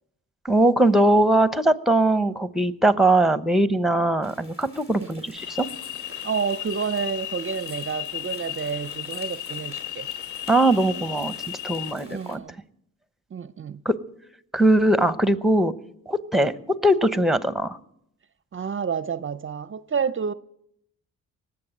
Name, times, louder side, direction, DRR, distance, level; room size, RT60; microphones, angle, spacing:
voice 1, 0.4-5.7 10.5-11.3 11.6-12.4 13.8-13.9 14.5-15.7 16.1-16.5 16.8-17.8, right 1 dB, ahead, 0.9 m, -20 dB
sound 1, 4.2-12.4, equal, 40° left, 3.2 m, -48 dB
sound 2, 5.3-11.9, left 13 dB, 60° left, 0.8 m, -35 dB
voice 2, 6.2-10.1 12.1-12.6 13.3-13.8 18.5-20.3, right 6 dB, 35° right, 0.5 m, -29 dB
19.0 x 7.7 x 9.0 m
cardioid pair, 75°, 34 cm